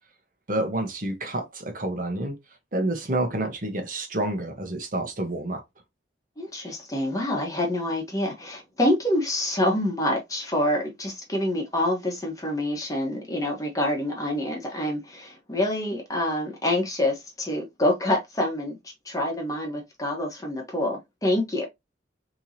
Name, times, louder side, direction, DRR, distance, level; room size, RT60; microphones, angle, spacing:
voice 1, 0.5-2.4 2.7-5.6, right 1 dB, 50° right, 1.0 m, -28 dB
voice 2, 6.4-21.7, left 1 dB, 20° left, 1.2 m, -26 dB
4.4 x 3.0 x 2.7 m
head